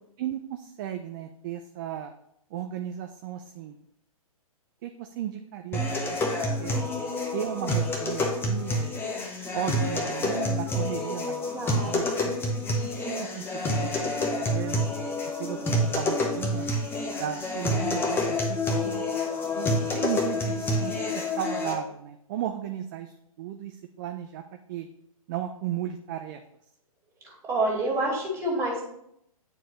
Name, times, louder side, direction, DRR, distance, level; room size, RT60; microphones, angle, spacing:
voice 1, 0.2-2.1 2.5-3.8 4.8-6.2 6.6-6.9 7.3-9.1 9.5-12.0 12.6-14.9 15.3-16.7 17.1-19.0 19.5-24.4 24.7-24.9 25.3-26.4, right 10 dB, 35° right, 7 dB, 0.4 m, -35 dB
sound 1, 5.7-21.7, left 1 dB, 10° left, 0.9 m, -28 dB
voice 2, 11.5-11.9 27.2-28.8, right 2 dB, 15° right, -2 dB, 2.1 m, -28 dB
9.2 x 4.4 x 3.1 m, 0.75 s
figure-of-eight pair, 125°, 19 cm